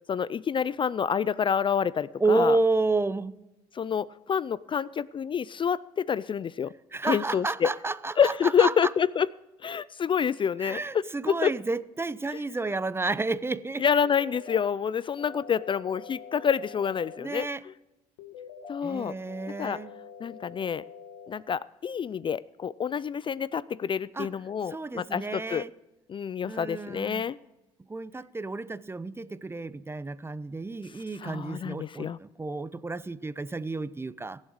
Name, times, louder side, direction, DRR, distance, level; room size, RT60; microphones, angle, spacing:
voice 1, 0.1-2.6 3.7-6.7 7.0-7.7 8.2-9.3 9.6-11.5 12.3-12.4 13.8-17.5 18.7-19.1 19.6-19.8 20.2-20.8 21.3-25.6 26.1-27.4 31.2-32.2, left 7 dB, 35° left, 0.4 m, -27 dB
voice 2, 2.2-3.4 6.9-8.9 10.6-13.8 17.2-17.6 18.8-19.9 24.1-24.3 24.7-25.7 26.4-27.2 27.9-34.4, right 3 dB, 15° right, 0.6 m, -30 dB
sound 1, 14.0-14.6 15.2-17.2 18.2-18.8 19.3-21.3, left 6 dB, 85° left, 1.8 m, -45 dB
21.5 x 7.4 x 4.8 m
supercardioid pair, 65°, 14 cm